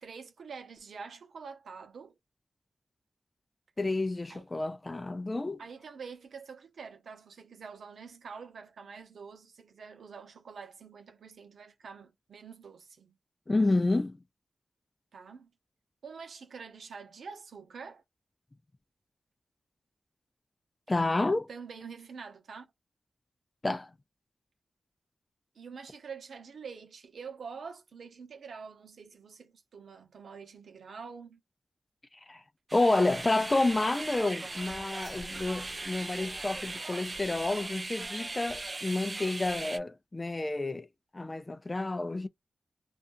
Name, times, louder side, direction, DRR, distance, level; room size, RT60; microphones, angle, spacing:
voice 1, 0.0-2.2 4.3-4.4 5.6-13.2 15.1-15.5 16.0-18.0 21.5-22.7 25.5-31.4, right 5 dB, 85° right, 0.7 m, -46 dB
voice 2, 3.8-5.6 13.5-14.2 20.9-21.5 23.6-23.9 32.3-32.4 32.7-40.9 41.1-42.3, left 2 dB, 30° left, 0.4 m, -29 dB
sound 1, 32.7-39.8, right 2 dB, 35° right, 0.4 m, -39 dB
2.5 x 2.4 x 2.4 m
cardioid pair, 60°, 0 cm